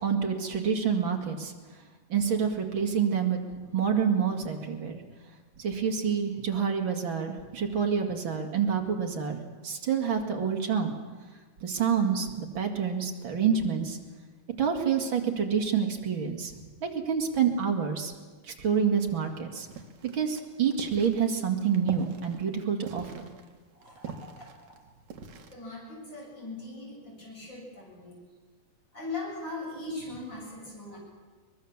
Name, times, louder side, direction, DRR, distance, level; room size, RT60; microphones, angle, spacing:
voice 1, 0.0-1.5 2.1-3.4 3.7-5.0 5.6-10.9 11.6-14.0 14.6-16.5 16.8-18.1 18.5-19.7 20.1-23.1, right 7 dB, 45° right, 3 dB, 2.7 m, -27 dB
sound 1, 19.7-25.5, right 6 dB, 65° right, 2.9 m, -43 dB
voice 2, 23.8-24.4 25.5-28.2 28.9-31.0, left 2 dB, 35° left, -3 dB, 8.6 m, -40 dB
23.5 x 20.5 x 7.3 m, 1.4 s
omnidirectional pair, 3.5 m